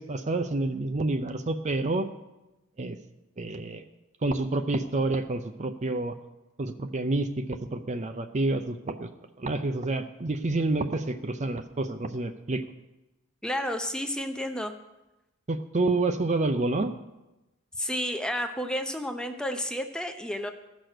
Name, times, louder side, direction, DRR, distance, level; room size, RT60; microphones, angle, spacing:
voice 1, 0.0-2.1 2.8-3.0 3.4-3.8 4.2-6.1 6.6-9.1 9.4-12.6 15.5-16.9, right 2 dB, 35° right, 8 dB, 0.6 m, -28 dB
voice 2, 13.4-14.7 17.8-20.5, equal, 5° left, 6 dB, 0.7 m, -31 dB
14.5 x 6.1 x 6.5 m, 1.0 s
head